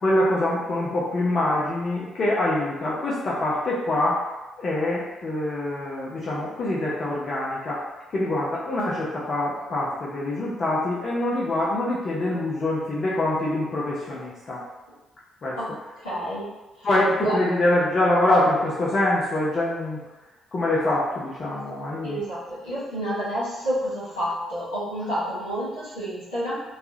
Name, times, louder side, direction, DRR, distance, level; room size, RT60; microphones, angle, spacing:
voice 1, 0.0-4.2 4.6-7.8 8.1-14.6 15.4-15.6 16.8-20.0 20.5-22.2, left 1 dB, 50° left, -6 dB, 0.6 m, -24 dB
voice 2, 16.0-16.5 16.8-16.9 17.2-17.4 22.0-26.5, equal, 90° left, -13 dB, 1.3 m, -29 dB
3.2 x 2.3 x 2.7 m, 1.1 s
hypercardioid pair, 45°, 0 cm